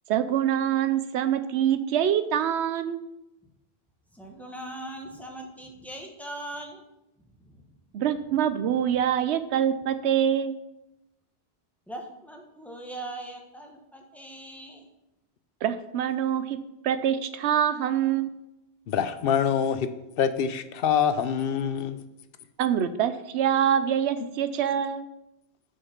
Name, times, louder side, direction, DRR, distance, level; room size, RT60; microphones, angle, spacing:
voice 1, 0.1-3.0 7.9-10.5 15.6-16.6 16.8-18.3 22.6-25.0, right 9 dB, 90° right, 11 dB, 0.9 m, -25 dB
voice 2, 4.1-6.8 7.4-7.6 11.9-14.9, right 1 dB, ahead, 1 dB, 1.1 m, -40 dB
voice 3, 18.9-19.9 20.2-22.0, left 8 dB, 65° left, 11 dB, 0.8 m, -25 dB
6.6 x 5.6 x 5.8 m, 0.91 s
omnidirectional pair, 1.1 m